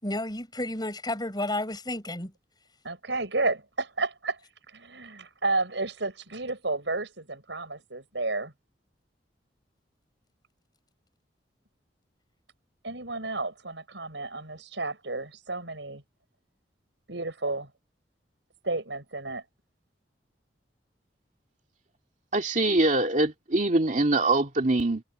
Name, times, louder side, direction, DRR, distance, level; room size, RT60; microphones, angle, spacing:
voice 1, 0.0-2.3, left 1 dB, 25° left, 6.3 m, -31 dB
voice 2, 2.8-4.4 4.7-8.5 12.8-16.0 17.1-17.7 18.6-19.4, right 3 dB, 90° right, 6.6 m, -31 dB
voice 3, 22.3-25.0, right 2 dB, 45° right, 2.3 m, -23 dB
head